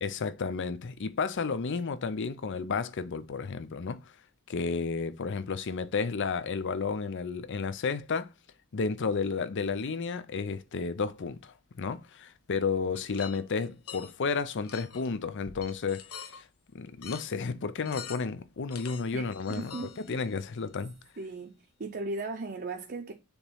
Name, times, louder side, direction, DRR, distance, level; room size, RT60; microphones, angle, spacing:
voice 1, 0.0-4.0 4.5-8.3 8.7-16.5 16.7-19.7 20.1-20.9, left 5 dB, 55° left, 0.6 m, -32 dB
sound 1, 12.9-14.1 14.6-15.1 15.4-16.4 17.0-17.3 17.8-18.4 18.7-20.4, left 8 dB, 75° left, 1.0 m, -45 dB
voice 2, 19.1-20.2 21.2-23.1, right 3 dB, 45° right, 0.7 m, -37 dB
7.0 x 3.0 x 5.5 m
head